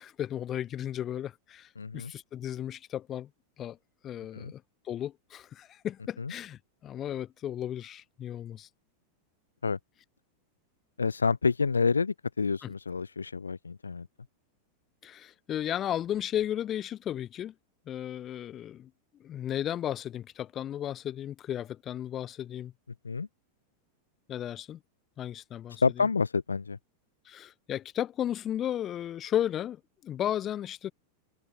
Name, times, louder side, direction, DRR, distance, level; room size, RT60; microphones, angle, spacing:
voice 1, 0.0-3.3 3.6-3.8 4.0-8.7 12.6-12.7 15.0-17.5 17.9-18.9 19.2-22.7 24.3-24.8 25.2-26.1 27.2-30.9, left 11 dB, 30° left, 5.9 m, -34 dB
voice 2, 1.8-2.1 4.3-4.5 6.2-6.3 9.6-9.8 11.0-14.1 23.0-23.3 25.8-26.8, left 5 dB, 75° left, 1.1 m, -28 dB
figure-of-eight pair, 90°, 0 cm